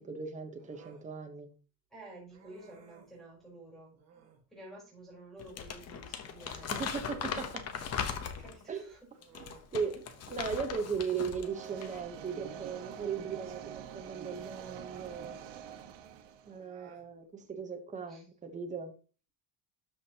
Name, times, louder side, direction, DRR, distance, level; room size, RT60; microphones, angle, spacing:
voice 1, 0.0-1.5 6.5-7.5 8.7-8.8 9.7-15.4 16.5-18.9, right 6 dB, 15° right, 5 dB, 1.0 m, -37 dB
Human voice, 0.6-1.1 2.3-3.2 3.9-4.5 6.4-8.2 8.5-8.7 9.1-10.4 11.6-11.7 12.3-13.2 14.5-15.4 16.4-17.1, right 7 dB, 35° right, 1.7 m, -58 dB
voice 2, 1.9-4.0 4.5-6.8 8.4-9.1 18.1-18.3, right 1 dB, ahead, -4 dB, 4.2 m, -51 dB
Crumpling crinkling, 5.4-8.6 9.2-11.5 11.8-12.0, left 7 dB, 35° left, 1.0 m, -39 dB
sound 1, 11.4-16.6, right 8 dB, 75° right, 1.4 m, -46 dB
12.5 x 5.3 x 2.9 m, 0.36 s
cardioid pair, 170°, 43 cm